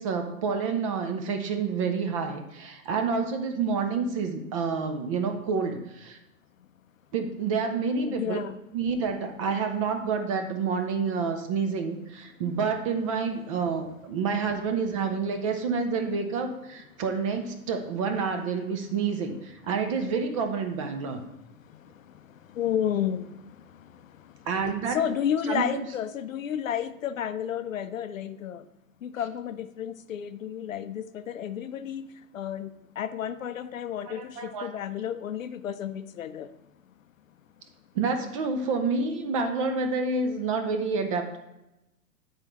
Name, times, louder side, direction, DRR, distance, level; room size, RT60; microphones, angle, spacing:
voice 1, 0.0-6.2 7.1-8.4 8.7-21.2 24.5-25.0 25.5-25.9 34.1-34.7 37.9-41.4, right 5 dB, 25° right, 6 dB, 0.4 m, -28 dB
voice 2, 8.1-8.6 22.6-23.3 24.9-28.6 29.0-32.1 32.3-32.7 33.0-36.5, left 9 dB, 65° left, 12 dB, 0.5 m, -31 dB
9.6 x 4.0 x 4.3 m, 0.93 s
figure-of-eight pair, 100°, 44 cm